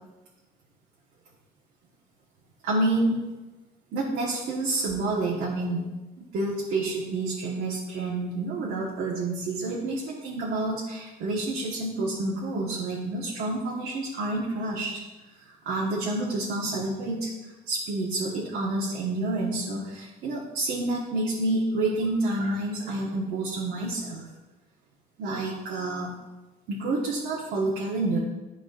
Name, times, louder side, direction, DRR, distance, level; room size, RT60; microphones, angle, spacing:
voice 1, 2.6-3.2 3.9-5.9 6.3-15.0 15.4-17.3 17.7-24.3 25.2-26.1 26.7-28.2, right 2 dB, 75° right, -5 dB, 1.4 m, -28 dB
12.0 x 4.9 x 2.6 m, 1.1 s
cardioid pair, 110°, 17 cm